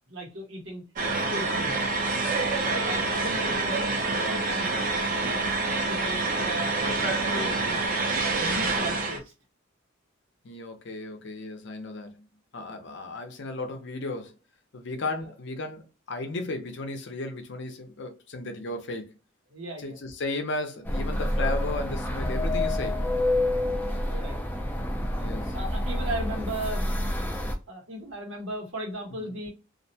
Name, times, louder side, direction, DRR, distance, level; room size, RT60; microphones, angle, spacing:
voice 1, 0.1-1.9 2.3-5.5 5.9-6.7 7.0-7.8 8.2-9.3 15.2-15.3 19.5-20.0 23.8-24.3 25.1-25.3 25.5-27.3 27.7-29.5, right 1 dB, 75° right, 1.2 m, -37 dB
sound 1, 1.0-9.2, right 3 dB, 45° right, 0.5 m, -27 dB
voice 2, 10.4-12.3 12.5-14.3 14.7-19.1 19.8-23.1 25.2-25.6 29.2-29.3, left 2 dB, 60° left, 0.6 m, -35 dB
sound 2, 20.8-27.5, left 1 dB, 10° left, 0.3 m, -28 dB
2.5 x 2.1 x 2.7 m
head